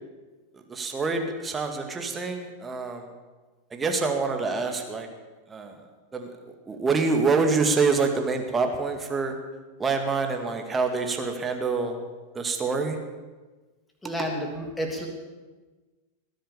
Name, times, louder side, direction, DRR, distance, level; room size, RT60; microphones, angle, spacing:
voice 1, 0.5-3.1 3.7-5.1 5.5-5.8 6.1-9.3 9.8-12.0 12.3-13.0, right 4 dB, 15° right, 4 dB, 2.1 m, -26 dB
voice 2, 14.0-15.1, equal, 10° left, 1 dB, 3.1 m, -30 dB
19.0 x 10.0 x 7.2 m, 1.3 s
figure-of-eight pair, 90°, 0 cm